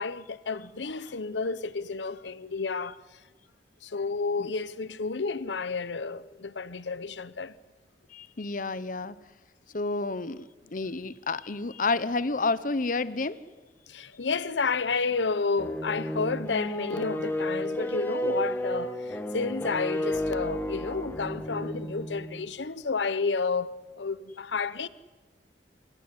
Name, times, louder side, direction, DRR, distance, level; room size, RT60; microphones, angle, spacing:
voice 1, 0.0-3.0 3.8-7.5 13.9-24.9, left 4 dB, 85° left, 0.8 m, -31 dB
voice 2, 8.1-9.2 9.7-13.4, left 3 dB, 50° left, 0.9 m, -30 dB
sound 1, 15.6-22.5, equal, 10° left, 1.8 m, -32 dB
27.5 x 17.5 x 9.8 m
head